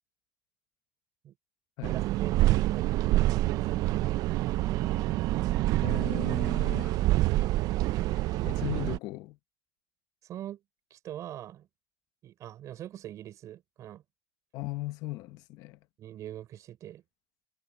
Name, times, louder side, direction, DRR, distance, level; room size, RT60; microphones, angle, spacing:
sound 1, 1.8-9.0, right 16 dB, 75° right, 0.5 m, -27 dB
voice 1, 1.9-4.7 5.7-6.1 10.2-10.6 10.9-11.7 12.2-14.0 16.0-17.0, right 12 dB, 60° right, 4.9 m, -44 dB
voice 2, 5.8-7.1 8.1-9.4 14.5-15.8, left 18 dB, 90° left, 1.0 m, -38 dB
cardioid pair, 130°, 6 cm